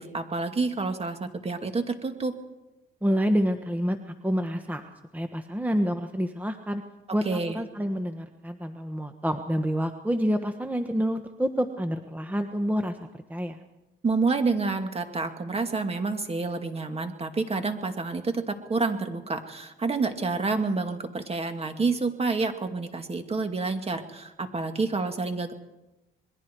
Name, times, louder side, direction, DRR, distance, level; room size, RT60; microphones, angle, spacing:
voice 1, 0.0-2.3 7.2-7.6 14.0-25.5, right 3 dB, 30° right, 6 dB, 2.4 m, -28 dB
voice 2, 3.0-4.8 5.1-6.8 7.1-13.0 13.3-13.6, equal, 10° right, 7 dB, 1.3 m, -28 dB
27.0 x 21.5 x 4.7 m, 0.97 s
cardioid pair, 90°, 20 cm